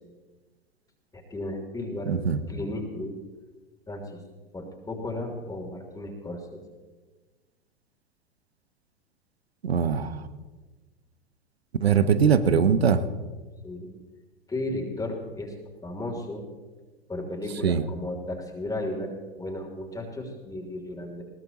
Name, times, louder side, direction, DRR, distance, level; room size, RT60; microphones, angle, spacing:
voice 1, 1.1-2.1 2.5-3.2 3.9-4.2 4.5-6.6 13.6-13.9 14.5-15.5 15.8-16.4 17.1-21.2, left 1 dB, 10° left, 1 dB, 3.1 m, -34 dB
voice 2, 2.1-2.4 9.6-10.2 11.8-13.0 17.6-17.8, right 7 dB, 85° right, 12 dB, 1.0 m, -21 dB
21.5 x 18.0 x 3.0 m, 1.3 s
hypercardioid pair, 100°, 30 cm